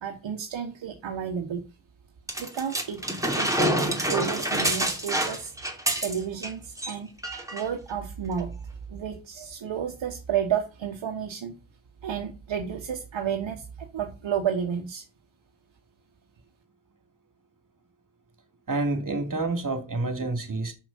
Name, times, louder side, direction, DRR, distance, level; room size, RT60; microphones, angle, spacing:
voice 1, 0.0-1.6 2.4-3.0 3.4-5.5 6.0-7.1 7.5-8.5 8.9-11.6 12.0-15.0, right 8 dB, 70° right, 1.3 m, -31 dB
sound 1, 2.3-6.5 6.8-6.9 7.2-7.7 8.4-8.5, right 1 dB, 5° right, 2.8 m, -27 dB
voice 2, 18.7-20.7, right 2 dB, 40° right, 2.5 m, -28 dB
6.4 x 6.0 x 5.3 m
supercardioid pair, 40°, 47 cm